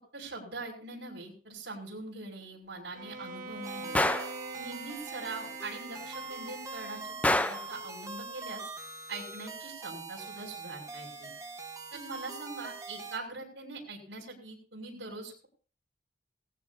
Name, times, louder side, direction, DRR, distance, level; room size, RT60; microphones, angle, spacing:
voice 1, 0.1-4.1 4.6-8.6 9.1-11.3 11.9-15.5, right 2 dB, 65° right, -3 dB, 5.9 m, -42 dB
Bowed string instrument, 2.9-7.3, right 3 dB, 50° right, 1.9 m, -43 dB
sound 1, 3.6-13.2, right 3 dB, 20° right, 1.8 m, -43 dB
Gunshot gunfire, 4.0-4.4 7.2-7.7, left 1 dB, 10° left, 0.6 m, -26 dB
18.5 x 15.0 x 2.7 m, 0.42 s
head